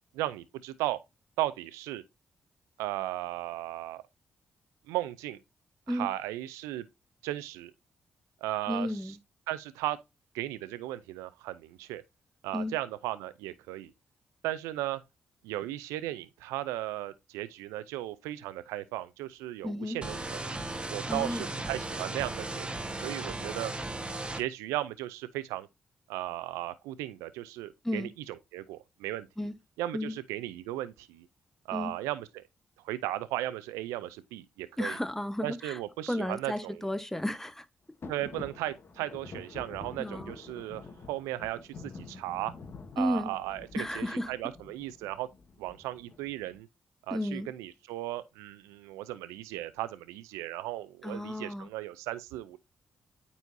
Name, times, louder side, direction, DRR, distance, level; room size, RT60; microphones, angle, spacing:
voice 1, 0.1-1.0 1.4-2.0 2.8-4.0 4.9-5.4 5.9-6.9 7.2-7.7 8.4-9.2 9.5-10.0 10.3-12.0 12.4-13.9 14.4-15.0 15.4-20.6 20.9-23.7 24.3-25.7 26.1-29.3 29.8-31.3 31.7-32.5 32.8-35.0 35.4-36.9 38.1-42.5 43.0-45.3 45.6-46.7 47.1-52.6, right 15 dB, 90° right, 0.4 m, -36 dB
voice 2, 8.7-9.2 12.5-12.7 19.6-20.0 21.1-21.5 27.8-28.1 29.4-29.5 29.9-30.1 31.7-31.9 34.8-35.8 36.1-37.6 40.0-40.3 43.0-43.3 43.7-44.3 47.1-47.5 51.0-51.7, left 1 dB, 5° left, 1.1 m, -33 dB
sound 1, 20.0-24.4, right 2 dB, 20° right, 1.3 m, -36 dB
sound 2, 38.0-46.6, left 4 dB, 50° left, 1.5 m, -48 dB
9.1 x 4.1 x 2.6 m
supercardioid pair, 45°, 5 cm